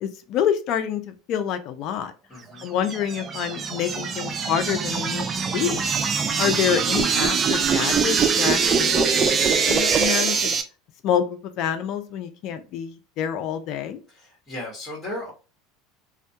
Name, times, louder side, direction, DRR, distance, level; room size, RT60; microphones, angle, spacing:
voice 1, 0.0-2.1 2.6-5.3 5.5-5.9 6.4-10.5 11.0-14.0, left 9 dB, 55° left, 9 dB, 0.4 m, -27 dB
voice 2, 2.3-2.6 14.1-15.3, left 1 dB, 20° left, -3 dB, 1.2 m, -35 dB
sound 1, 2.6-10.6, right 6 dB, 30° right, 0.3 m, -23 dB
2.2 x 2.1 x 2.7 m, 0.34 s
hypercardioid pair, 95°, 0 cm